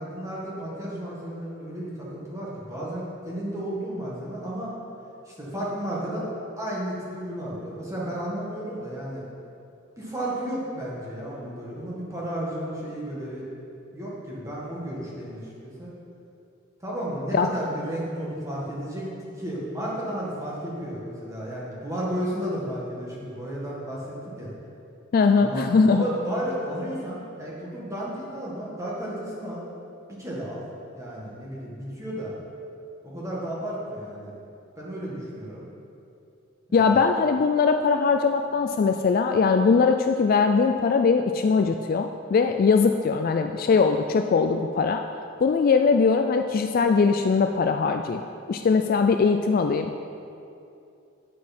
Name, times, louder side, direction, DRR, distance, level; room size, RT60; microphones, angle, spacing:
voice 1, 0.0-4.7 5.3-6.3 6.6-9.2 10.0-13.5 13.9-15.9 16.8-19.1 19.4-24.5 25.3-29.6 30.1-30.6 30.9-32.4 33.0-34.4 34.8-35.7 36.7-37.0, right 1 dB, 15° right, -6 dB, 1.7 m, -33 dB
voice 2, 25.1-26.0 36.7-45.0 45.4-48.2 48.5-49.9, left 5 dB, 45° left, 6 dB, 0.3 m, -21 dB
9.4 x 8.4 x 4.3 m, 2.6 s
head